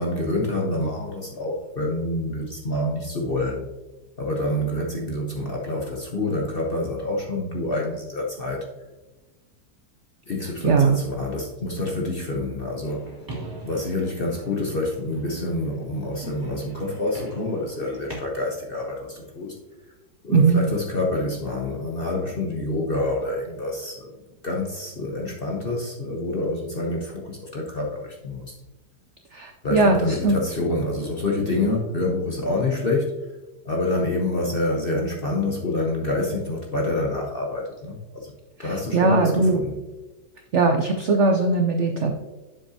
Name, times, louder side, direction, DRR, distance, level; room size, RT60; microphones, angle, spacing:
voice 1, 0.0-3.6 4.2-8.7 10.3-13.1 13.6-19.6 20.2-24.1 24.4-28.5 29.6-33.1 33.6-38.3 38.6-39.8, left 2 dB, 45° left, -1 dB, 0.8 m, -27 dB
voice 2, 10.4-11.0 20.3-20.6 29.3-30.4 38.6-39.6 40.5-42.2, right 3 dB, 70° right, 4 dB, 0.6 m, -20 dB
sound 1, 12.8-18.1, right 2 dB, 10° right, 2.3 m, -41 dB
7.4 x 7.1 x 2.8 m, 1.1 s
omnidirectional pair, 2.0 m